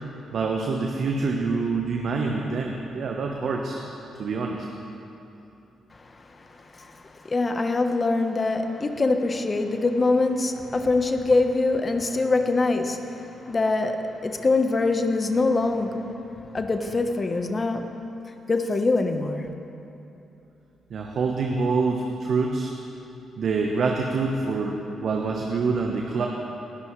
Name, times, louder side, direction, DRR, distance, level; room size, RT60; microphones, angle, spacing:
voice 1, 0.3-3.8 4.2-4.6 20.9-22.7 23.4-26.3, right 4 dB, 65° right, 1 dB, 1.0 m, -26 dB
voice 2, 6.0-16.0 16.5-17.9 18.5-19.5, left 3 dB, 35° left, 6 dB, 1.1 m, -24 dB
20.0 x 11.0 x 3.2 m, 2.9 s
supercardioid pair, 55°, 0 cm